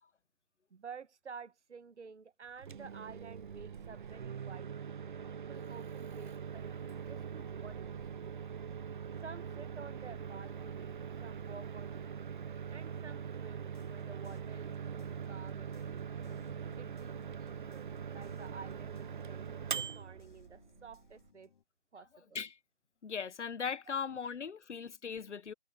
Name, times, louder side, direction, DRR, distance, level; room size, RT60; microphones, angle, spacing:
voice 1, 0.7-5.0 5.3-8.5 9.2-16.1 16.7-21.5 21.9-22.4 23.9-24.0, right 5 dB, 70° right, 1.6 m, -52 dB
Microwave oven, 2.5-21.3, right 7 dB, 45° right, 0.7 m, -42 dB
sound 1, 13.6-21.6, left 7 dB, 45° left, 6.2 m, -64 dB
voice 2, 23.0-25.5, left 6 dB, 75° left, 1.2 m, -38 dB
figure-of-eight pair, 160°, 36 cm